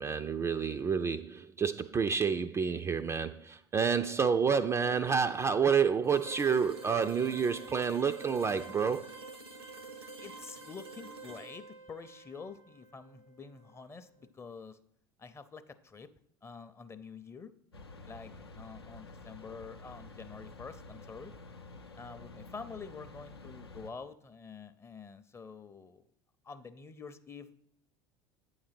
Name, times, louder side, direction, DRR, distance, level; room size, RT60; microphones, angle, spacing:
voice 1, 0.0-9.1, right 6 dB, 20° right, 0.3 m, -29 dB
sound 1, 6.0-13.9, right 3 dB, 90° right, 0.8 m, -48 dB
voice 2, 10.2-14.8 15.2-16.1 16.4-17.5 18.0-21.3 22.0-26.0 26.4-27.5, left 5 dB, 20° left, 0.6 m, -47 dB
sound 2, 17.7-23.9, left 2 dB, 90° left, 0.6 m, -50 dB
8.6 x 4.0 x 5.8 m
figure-of-eight pair, 70°, 13 cm